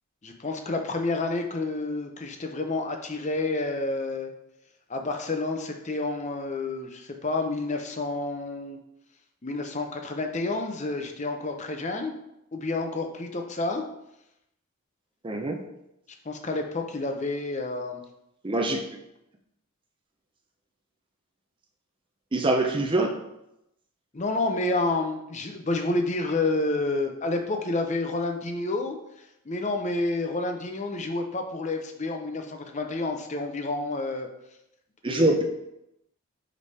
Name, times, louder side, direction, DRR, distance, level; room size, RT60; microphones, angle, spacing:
voice 1, 0.2-4.3 4.9-8.8 9.4-12.1 12.5-13.8 16.2-18.0 24.1-29.0 29.5-34.3 35.1-35.3, left 2 dB, 30° left, 4 dB, 0.7 m, -29 dB
voice 2, 15.2-15.6 18.4-18.8 22.3-23.2 35.0-35.4, right 2 dB, 20° right, 2 dB, 0.5 m, -24 dB
5.2 x 5.0 x 4.2 m, 0.84 s
head